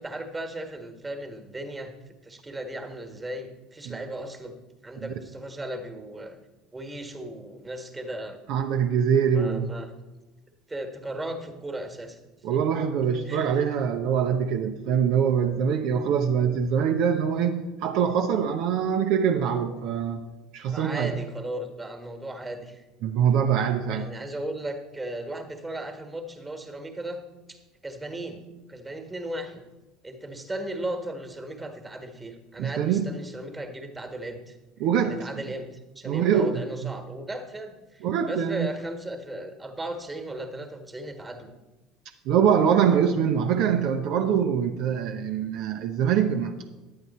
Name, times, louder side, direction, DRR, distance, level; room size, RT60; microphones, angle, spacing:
voice 1, 0.0-1.9 2.2-6.4 6.7-8.4 9.3-9.9 10.7-12.2 12.5-12.6 13.3-13.6 20.7-22.8 23.9-27.2 27.5-28.4 28.7-29.6 30.0-34.6 35.0-41.5, right 1 dB, 15° right, 6 dB, 1.5 m, -36 dB
voice 2, 8.5-9.7 12.4-20.2 20.5-21.1 23.0-24.1 32.6-33.1 34.8-35.2 36.0-36.9 38.0-38.7 42.3-46.5, right 8 dB, 55° right, 4 dB, 0.7 m, -24 dB
10.5 x 8.8 x 4.2 m, 1.1 s
figure-of-eight pair, 65°, 0 cm